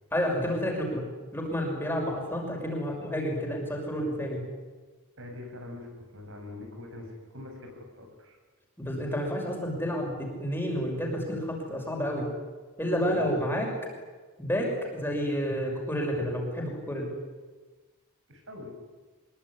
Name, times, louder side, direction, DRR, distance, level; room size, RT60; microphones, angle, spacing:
voice 1, 0.1-1.1 1.3-4.4 8.8-12.3 12.8-13.7 14.4-17.1, equal, 10° left, 0 dB, 6.1 m, -30 dB
voice 2, 5.2-8.4 13.0-13.4 18.3-18.7, left 2 dB, 60° right, 3 dB, 7.8 m, -43 dB
25.5 x 22.5 x 9.9 m, 1.4 s
head